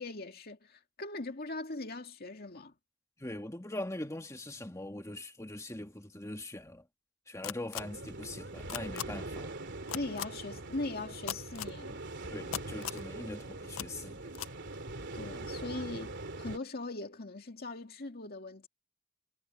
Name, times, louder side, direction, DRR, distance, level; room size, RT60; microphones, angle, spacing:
voice 1, 0.0-2.7 9.9-12.0 15.1-18.7, left 2 dB, 45° left, 2.2 m, -40 dB
voice 2, 3.2-6.9 7.3-9.6 12.3-14.2, left 1 dB, 15° left, 1.8 m, -42 dB
sound 1, 7.4-7.8 8.7-9.0 9.9-10.2 11.3-11.7 12.5-13.0 13.7-13.9 14.3-14.5, left 11 dB, 60° left, 0.4 m, -37 dB
sound 2, 7.7-16.6, right 2 dB, 55° right, 3.1 m, -42 dB
head